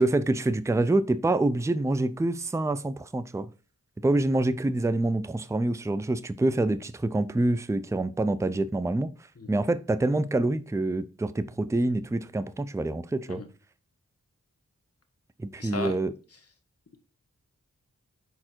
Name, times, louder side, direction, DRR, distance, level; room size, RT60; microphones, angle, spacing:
voice 1, 0.0-3.5 4.0-9.1 9.5-13.4 15.4-16.1, right 2 dB, 10° right, 0.5 m, -26 dB
voice 2, 15.6-16.0, left 4 dB, 50° left, 1.4 m, -35 dB
5.3 x 4.4 x 4.4 m
wide cardioid pair, 50°, 31 cm